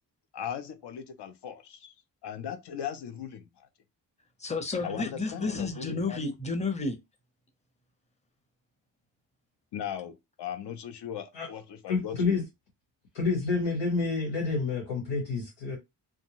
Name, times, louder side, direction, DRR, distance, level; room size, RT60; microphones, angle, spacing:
voice 1, 0.3-1.9 2.2-3.7 4.8-6.2 9.7-12.4, left 9 dB, 70° left, 0.6 m, -38 dB
voice 2, 4.4-7.0, left 3 dB, 15° left, 0.7 m, -31 dB
voice 3, 11.9-12.4 13.1-15.8, left 4 dB, 90° left, 1.4 m, -28 dB
2.6 x 2.2 x 2.9 m
cardioid pair, 80°, 43 cm